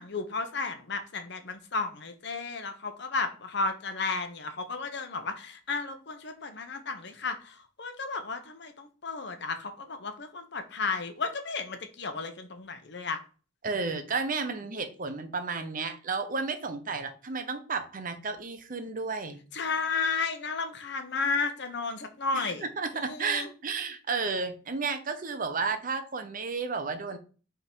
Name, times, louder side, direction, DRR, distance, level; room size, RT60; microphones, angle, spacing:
voice 1, 0.0-13.2 19.5-22.7 22.9-23.5, left 4 dB, 65° left, 7 dB, 0.9 m, -33 dB
voice 2, 13.6-19.4 22.3-27.2, right 4 dB, 45° right, 8 dB, 0.9 m, -32 dB
5.6 x 3.7 x 4.6 m, 0.37 s
head